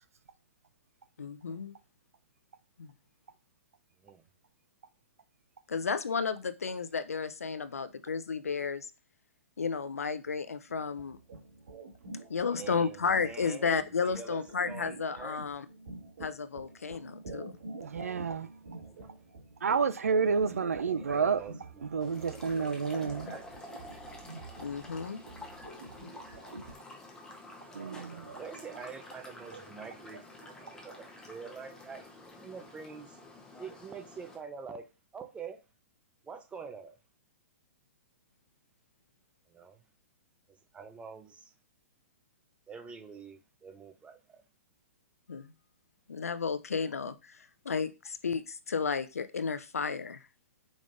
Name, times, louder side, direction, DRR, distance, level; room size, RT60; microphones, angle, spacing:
voice 1, 1.2-1.7 2.8-2.9 5.7-8.9 9.6-11.2 12.3-15.7 16.2-17.5 24.6-25.2 45.3-45.5 46.1-50.2, left 5 dB, 90° left, 0.5 m, -33 dB
sound 1, 10.7-26.7, right 2 dB, 70° right, 1.7 m, -48 dB
voice 2, 12.5-13.0 13.2-15.4 18.8-19.1 20.9-21.8 22.2-23.4 28.3-32.0 32.3-33.2 33.6-34.9 35.1-35.6 36.2-37.0 39.5-39.8 40.5-41.5 42.7-44.4, right 6 dB, 15° right, 0.8 m, -46 dB
voice 3, 17.8-18.5 19.6-21.4 21.8-23.3 27.7-28.4, right 5 dB, 85° right, 0.5 m, -30 dB
sound 2, 22.0-34.4, left 2 dB, 10° left, 1.0 m, -49 dB
5.0 x 3.5 x 2.6 m
hypercardioid pair, 125°, 8 cm